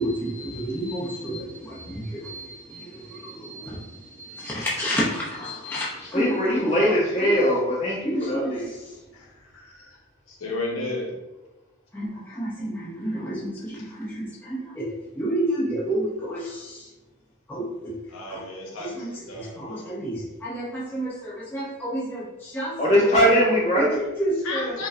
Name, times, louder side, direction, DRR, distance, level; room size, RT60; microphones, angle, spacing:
voice 1, 0.0-7.4 8.0-8.6 11.9-16.9 17.5-18.0 18.3-18.4 19.0-19.1 19.6-22.8 23.8-24.7, right 1 dB, 10° left, -7 dB, 0.5 m, -30 dB
voice 2, 4.3-4.7 9.1-10.0 10.3-11.1 13.8-13.9 18.1-19.9 24.4-24.9, left 2 dB, 75° left, -2 dB, 0.8 m, -34 dB
voice 3, 6.1-8.7 22.8-23.9, equal, 30° left, -5 dB, 1.1 m, -21 dB
5.0 x 2.1 x 2.4 m, 1.1 s
head